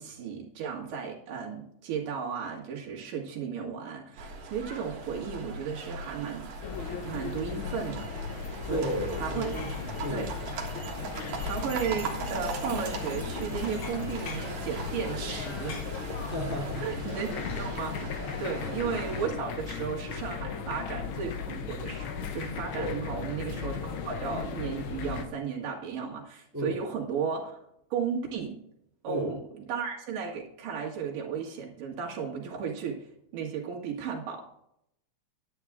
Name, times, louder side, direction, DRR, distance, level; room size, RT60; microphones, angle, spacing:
voice 1, 0.0-6.5 7.0-8.1 8.7-8.8 9.2-9.5 10.1-10.3 11.4-15.9 16.8-18.1 18.4-27.6 27.9-28.6 29.0-33.1 33.3-34.6, right 6 dB, 90° right, -1 dB, 3.5 m, -34 dB
sound 1, 4.2-19.3, right 4 dB, 60° right, 2.8 m, -39 dB
sound 2, 6.6-25.3, left 6 dB, 65° left, 1.3 m, -37 dB
voice 2, 8.7-9.7 10.0-10.3 16.3-16.9 18.6-18.9 22.8-23.0 26.5-26.8 29.1-29.4, equal, 5° right, 0 dB, 2.0 m, -33 dB
10.0 x 9.9 x 3.6 m, 0.75 s
omnidirectional pair, 3.7 m